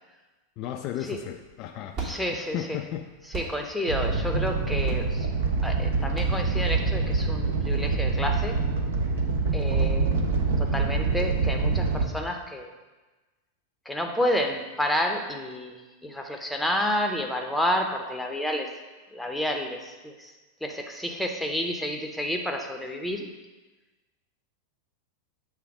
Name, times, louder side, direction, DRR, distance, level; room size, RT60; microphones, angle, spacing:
voice 1, 0.6-2.0 2.3-3.1, left 11 dB, 40° left, 5 dB, 0.3 m, -34 dB
sound 1, 1.1-7.3, right 4 dB, 35° right, 1.2 m, -39 dB
voice 2, 2.0-2.8 3.3-5.3 5.6-8.6 9.5-12.7 13.9-15.7 16.0-18.7 19.1-20.3 20.6-23.3, left 1 dB, ahead, 3 dB, 0.7 m, -30 dB
Animal, 3.9-12.0, right 4 dB, 60° right, 0.8 m, -25 dB
7.6 x 3.5 x 4.8 m, 1.2 s
figure-of-eight pair, 90°, 0 cm